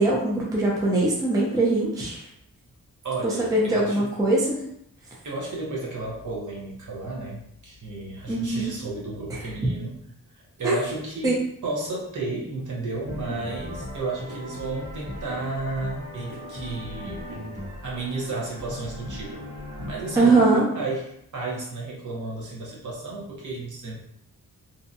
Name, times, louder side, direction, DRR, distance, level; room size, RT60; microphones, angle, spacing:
voice 1, 0.0-2.2 3.4-4.6 8.3-8.7 10.6-10.8 11.2-11.3 20.2-20.7, right 2 dB, 10° right, -4 dB, 0.4 m, -21 dB
voice 2, 3.0-4.1 5.2-10.1 10.6-17.2 17.8-19.3 19.9-21.1 21.3-24.0, right 3 dB, 60° right, -4 dB, 0.8 m, -32 dB
sound 1, 13.0-20.4, left 1 dB, 75° right, 1.2 m, -37 dB
2.7 x 2.1 x 2.6 m, 0.71 s
wide cardioid pair, 175°, 34 cm